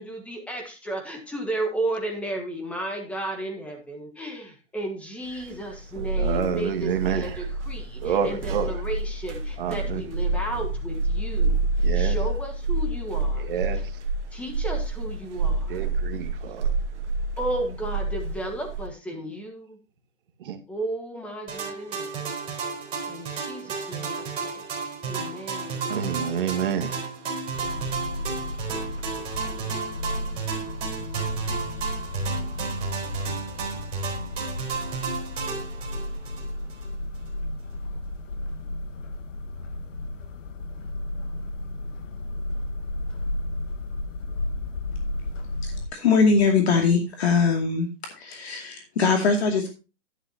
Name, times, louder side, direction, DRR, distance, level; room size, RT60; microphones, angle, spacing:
voice 1, 0.0-11.7 11.9-13.5 14.3-15.8 17.4-19.8 20.7-22.1 23.1-24.6 25.0-25.9, right 1 dB, 5° left, 1.4 m, -34 dB
sound 1, 5.4-18.9, right 2 dB, 65° right, 1.8 m, -28 dB
voice 2, 6.2-7.5 8.0-8.8 9.6-10.1 11.8-12.2 13.4-13.9 15.7-16.8 20.4-20.6 25.9-27.1, right 8 dB, 45° right, 1.6 m, -28 dB
sound 2, 21.5-36.9, right 5 dB, 15° right, 3.7 m, -32 dB
sound 3, 27.5-45.9, left 1 dB, 75° left, 1.6 m, -33 dB
voice 3, 45.9-47.9 48.2-49.7, left 4 dB, 55° left, 2.4 m, -21 dB
11.0 x 10.5 x 2.8 m
hypercardioid pair, 155°, 37 cm